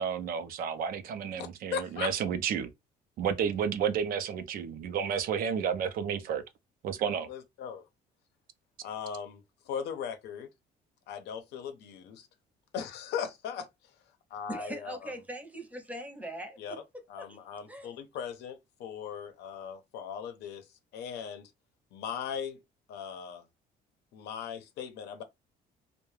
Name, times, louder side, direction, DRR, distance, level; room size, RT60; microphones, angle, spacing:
voice 1, 0.0-2.7 3.2-6.4 6.8-7.3, right 7 dB, 60° right, 0.5 m, -31 dB
voice 2, 1.4-2.1 7.3-7.8 8.8-10.5 11.1-12.3 12.7-13.7 14.3-15.1 16.6-16.8 17.1-20.7 20.9-21.5 21.9-22.6 22.9-23.4 24.1-25.2, left 7 dB, 80° left, 0.6 m, -38 dB
voice 3, 14.5-16.8 17.2-17.4 17.7-17.9, right 1 dB, 10° right, 0.7 m, -41 dB
2.3 x 2.1 x 3.1 m
cardioid pair, 110°, 17 cm